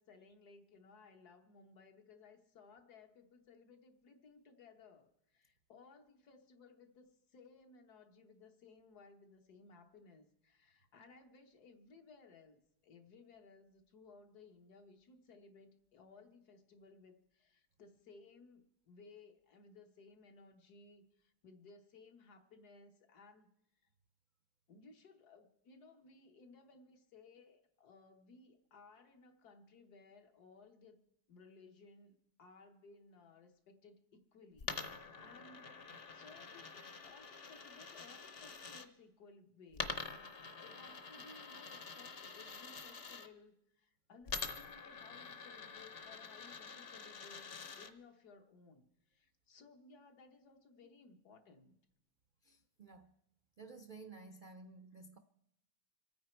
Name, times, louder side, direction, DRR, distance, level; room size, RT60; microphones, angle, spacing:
voice 1, 0.0-23.5 24.7-31.0 31.3-35.8 36.1-51.8 54.9-55.0, left 4 dB, 75° left, 1.8 m, -61 dB
Coin (dropping), 34.6-38.9 39.7-43.3 44.3-47.9, left 5 dB, 45° left, 1.0 m, -46 dB
voice 2, 52.4-53.1 53.6-55.2, right 3 dB, 65° right, 0.4 m, -54 dB
26.5 x 9.3 x 4.5 m
omnidirectional pair, 1.7 m